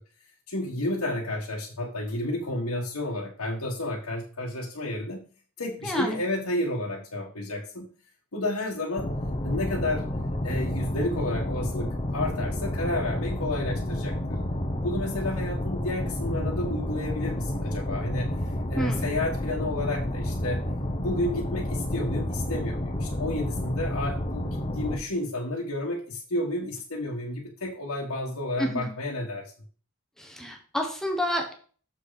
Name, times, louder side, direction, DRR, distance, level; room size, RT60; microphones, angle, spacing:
voice 1, 0.5-5.3 5.6-7.9 8.3-9.1 9.4-10.1 10.4-14.4 14.8-20.6 21.0-29.5, left 1 dB, 80° left, -3 dB, 1.4 m, -31 dB
voice 2, 5.8-6.2 18.8-19.0 28.6-28.9 30.2-31.5, equal, ahead, 1 dB, 1.1 m, -29 dB
sound 1, 9.0-25.0, left 1 dB, 30° left, 1.0 m, -30 dB
6.9 x 6.4 x 4.0 m, 0.42 s
head